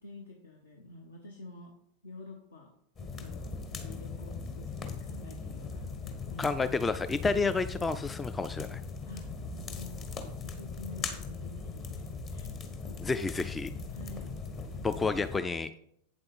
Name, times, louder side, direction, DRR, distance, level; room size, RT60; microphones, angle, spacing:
voice 1, 0.0-1.7 2.0-2.7 3.0-6.6 9.0-10.1 10.4-13.2 13.9-14.3, left 2 dB, 70° left, 1 dB, 1.1 m, -49 dB
sound 1, 3.0-15.4, left 4 dB, 30° left, 1.3 m, -40 dB
voice 2, 6.4-8.8 13.0-13.7 14.8-15.7, left 4 dB, 15° left, 12 dB, 0.3 m, -30 dB
8.6 x 7.7 x 4.0 m, 0.72 s
figure-of-eight pair, 90°, 0 cm